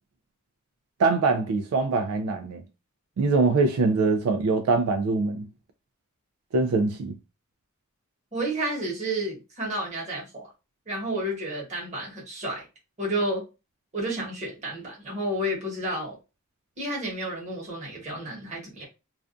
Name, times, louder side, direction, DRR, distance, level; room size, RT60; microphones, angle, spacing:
voice 1, 1.0-2.6 3.2-5.4 6.5-7.2, right 3 dB, 80° right, 0.3 m, -23 dB
voice 2, 8.3-10.5 10.9-12.7 13.0-13.4 13.9-16.1 16.8-18.8, right 1 dB, 35° right, 1.1 m, -31 dB
2.4 x 2.2 x 2.4 m
head